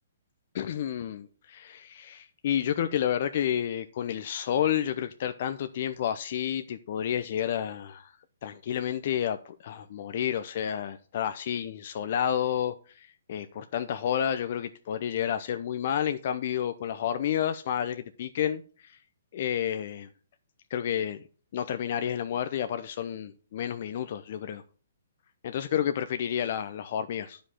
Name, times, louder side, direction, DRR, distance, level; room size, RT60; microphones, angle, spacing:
voice 1, 0.5-8.1 8.4-19.0 19.3-20.1 20.7-21.2 21.5-24.6 25.4-27.4, left 9 dB, 50° left, 0.7 m, -30 dB
11.0 x 5.2 x 5.8 m
hypercardioid pair, 130°, 0 cm